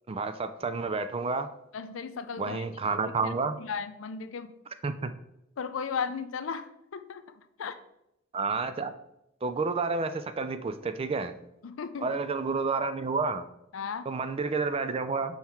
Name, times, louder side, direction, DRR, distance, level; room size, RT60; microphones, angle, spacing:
voice 1, 0.1-1.5 2.4-3.6 4.8-5.1 8.3-8.9 9.4-11.4 12.0-13.5 14.1-15.4, right 4 dB, 30° right, 11 dB, 0.4 m, -30 dB
voice 2, 1.7-2.7 3.0-4.5 5.6-7.2 7.6-7.8 11.6-12.1 13.7-14.1, left 6 dB, 85° left, 11 dB, 0.5 m, -36 dB
5.7 x 4.5 x 4.3 m, 0.83 s
head